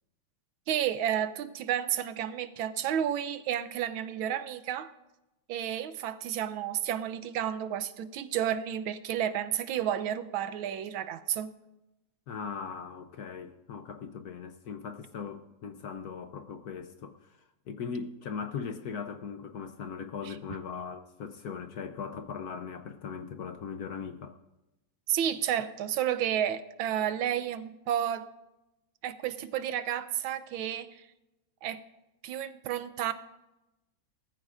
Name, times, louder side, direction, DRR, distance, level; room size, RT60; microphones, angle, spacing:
voice 1, 0.7-4.9 5.5-11.5 20.2-20.3 25.1-28.3 29.0-31.1 31.6-31.8 32.2-33.1, right 10 dB, 85° right, 12 dB, 1.5 m, -31 dB
voice 2, 12.3-17.4 17.7-24.4, left 6 dB, 60° left, 7 dB, 1.1 m, -39 dB
19.5 x 13.5 x 2.5 m, 0.96 s
omnidirectional pair, 2.2 m